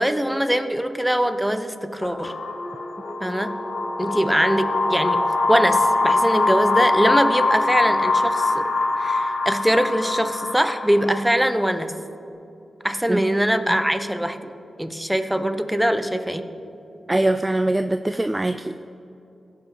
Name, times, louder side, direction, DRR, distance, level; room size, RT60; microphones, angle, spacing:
voice 1, 0.0-2.3 3.2-3.5 4.0-5.2 5.5-8.7 9.0-11.9 12.8-14.5 14.8-16.5, equal, 5° right, 9 dB, 0.8 m, -22 dB
sound 1, 2.0-11.5, left 2 dB, 70° left, 1.1 m, -23 dB
voice 2, 17.1-18.8, right 1 dB, 20° right, 9 dB, 0.3 m, -22 dB
16.0 x 5.5 x 3.9 m, 2.7 s
supercardioid pair, 40°, 0 cm